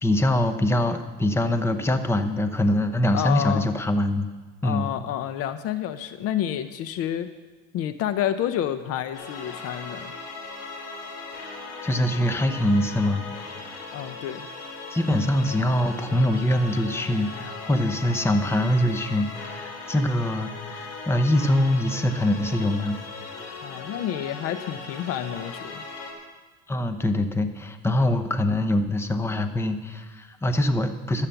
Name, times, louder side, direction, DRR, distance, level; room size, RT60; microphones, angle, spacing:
voice 1, 0.0-4.3 4.6-4.9 11.8-13.2 14.9-23.0 26.7-31.3, left 1 dB, 10° left, 8 dB, 0.8 m, -23 dB
voice 2, 3.1-3.7 4.6-7.3 7.7-10.1 13.9-14.5 23.6-25.8, left 11 dB, 55° left, 12 dB, 0.7 m, -29 dB
sound 1, 9.1-26.1, left 3 dB, 85° left, 2.8 m, -38 dB
12.5 x 7.5 x 7.0 m, 1.4 s
cardioid pair, 120°, 29 cm